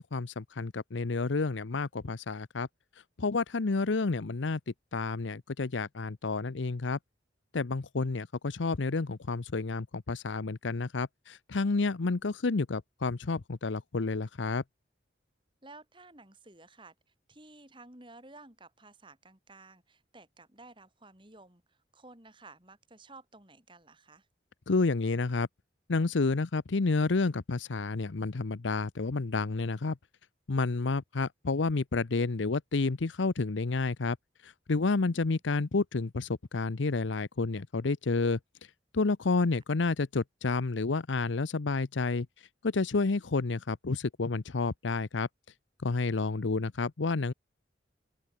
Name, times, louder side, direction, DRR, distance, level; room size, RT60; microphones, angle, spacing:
voice 1, 0.0-2.7 3.2-4.6 4.9-7.0 7.5-14.6 24.7-25.5 25.9-30.0 30.5-34.2 34.4-38.4 38.9-42.3 42.6-45.3 45.8-47.3, left 3 dB, 80° left, 0.7 m, -30 dB
voice 2, 15.6-16.9 17.3-24.3, right 2 dB, 25° right, 3.9 m, -54 dB
open air
head